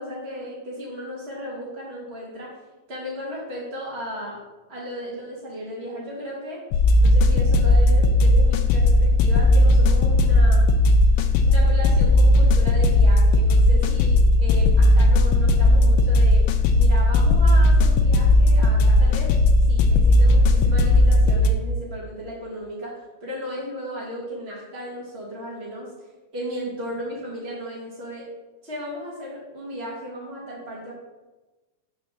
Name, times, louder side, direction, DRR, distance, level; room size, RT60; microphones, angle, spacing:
voice 1, 0.0-2.5 2.9-4.4 4.7-6.6 7.0-10.7 11.4-16.4 16.7-19.3 19.7-28.3 28.6-30.9, equal, 55° right, -4 dB, 0.6 m, -35 dB
sound 1, 6.7-21.5, left 1 dB, 80° left, 2.0 m, -16 dB
5.7 x 4.5 x 6.2 m, 1.2 s
omnidirectional pair, 3.8 m